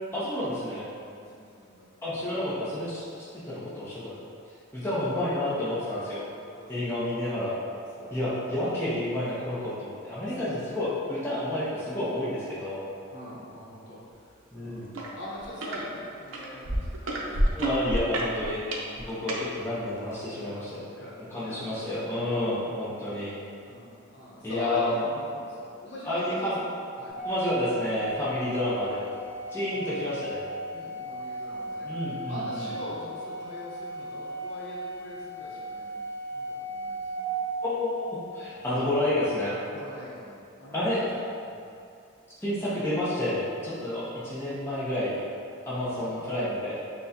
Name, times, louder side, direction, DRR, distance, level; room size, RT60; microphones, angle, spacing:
voice 1, 0.1-0.8 2.0-3.1 3.4-4.3 4.7-6.2 6.7-7.5 8.1-12.8 14.5-14.9 17.5-18.6 19.0-20.9 21.3-23.3 24.4-25.1 26.0-26.6 27.2-29.1 29.5-30.4 31.8-32.6 37.6-39.6 40.7-41.0 42.4-45.3 45.6-46.8, left 1 dB, 10° left, -11 dB, 0.6 m, -30 dB
voice 2, 1.0-1.9 4.8-5.2 6.6-6.9 8.0-8.4 10.3-10.5 13.1-14.8 15.2-17.6 19.1-19.3 20.5-20.6 21.0-22.4 23.6-27.2 29.7-30.0 30.7-36.0 36.3-37.3 39.7-41.1 41.5-41.6 46.0-46.2, equal, 55° left, -6 dB, 0.9 m, -43 dB
sound 1, 14.9-15.1 15.4-15.8 16.3-19.4 20.1-20.2, right 1 dB, 70° right, 0.5 m, -28 dB
Organ, 27.1-38.0, right 2 dB, 20° right, 1.1 m, -36 dB
6.0 x 2.2 x 2.7 m, 2.5 s
head